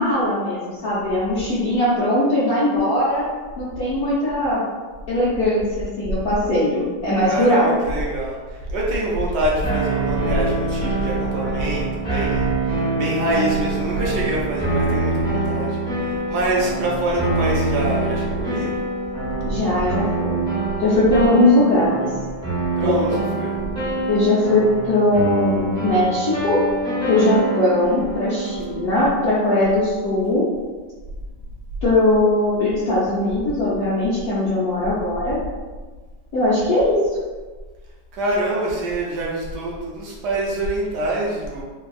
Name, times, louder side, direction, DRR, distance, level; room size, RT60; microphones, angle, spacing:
voice 1, 0.0-3.2 3.6-4.6 5.1-7.8 19.4-20.4 20.8-22.1 22.8-23.4 24.1-26.6 27.1-30.4 31.8-35.4 36.3-37.0, left 1 dB, 65° left, -10 dB, 1.1 m, -20 dB
voice 2, 7.3-8.4 8.7-18.7 22.8-23.5 38.1-41.6, right 1 dB, 75° right, -4 dB, 1.1 m, -25 dB
sound 1, 9.6-28.9, right 2 dB, 5° left, 0.5 m, -25 dB
3.3 x 2.2 x 2.3 m, 1.4 s
omnidirectional pair, 1.9 m